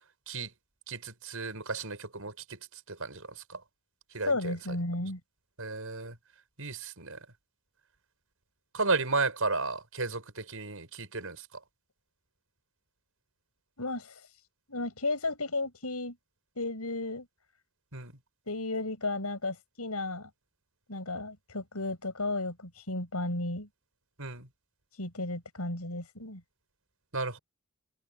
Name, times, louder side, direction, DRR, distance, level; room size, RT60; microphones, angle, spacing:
voice 1, 0.9-2.6 2.9-3.2 4.1-4.5 5.6-6.1 6.6-7.2 8.7-11.4 17.9-18.1 24.2-24.5 27.1-27.4, right 3 dB, 65° right, 6.9 m, -33 dB
voice 2, 4.3-5.2 13.8-14.1 14.7-16.2 16.6-17.3 18.5-20.3 20.9-23.7 25.0-26.4, left 2 dB, 90° left, 6.4 m, -33 dB
open air
head